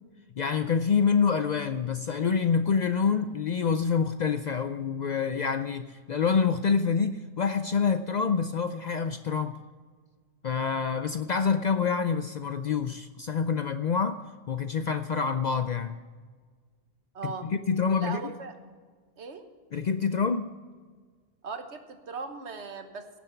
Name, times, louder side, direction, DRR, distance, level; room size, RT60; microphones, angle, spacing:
voice 1, 0.4-9.6 10.4-14.2 14.5-16.0 17.2-18.3 19.7-20.5, left 6 dB, 55° left, 10 dB, 0.5 m, -27 dB
voice 2, 17.1-17.5 18.0-18.5 19.2-19.4 21.4-23.2, right 5 dB, 80° right, 7 dB, 1.4 m, -38 dB
16.5 x 7.1 x 5.8 m, 1.5 s
omnidirectional pair, 1.2 m